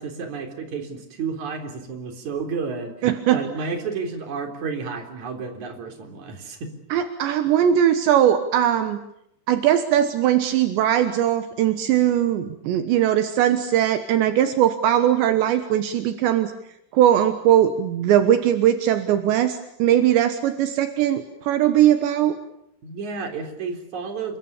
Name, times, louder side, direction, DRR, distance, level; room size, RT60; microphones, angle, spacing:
voice 1, 0.0-6.7 22.8-24.4, right 5 dB, 45° right, 5 dB, 4.7 m, -31 dB
voice 2, 3.0-3.4 6.9-9.0 9.5-16.5 16.9-22.4, right 10 dB, 75° right, 9 dB, 3.5 m, -20 dB
28.5 x 24.5 x 7.2 m, 0.77 s
omnidirectional pair, 5.2 m